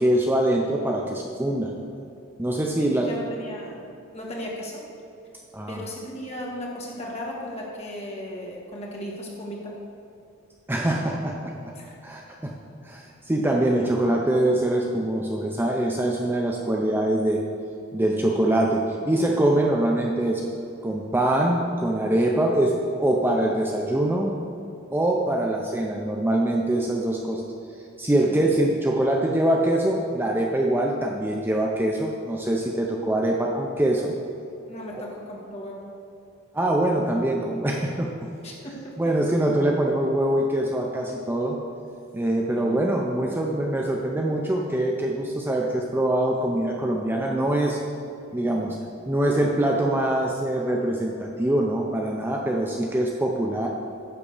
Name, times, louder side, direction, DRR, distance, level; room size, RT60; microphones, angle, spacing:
voice 1, 0.0-1.7 2.4-3.1 5.5-5.8 10.7-11.7 12.0-12.5 12.8-17.4 17.9-20.5 20.8-24.3 24.9-27.4 28.0-34.1 34.9-35.0 36.5-38.1 39.0-41.6 42.1-47.8 48.3-48.8 49.1-53.7, right 1 dB, 10° right, 0 dB, 0.5 m, -24 dB
voice 2, 2.8-3.8 4.1-4.8 5.7-9.7 11.7-12.0 28.2-28.4 34.7-35.8 38.4-39.1 42.5-42.8, equal, 30° left, -3 dB, 1.6 m, -36 dB
10.0 x 3.7 x 7.0 m, 2.7 s
head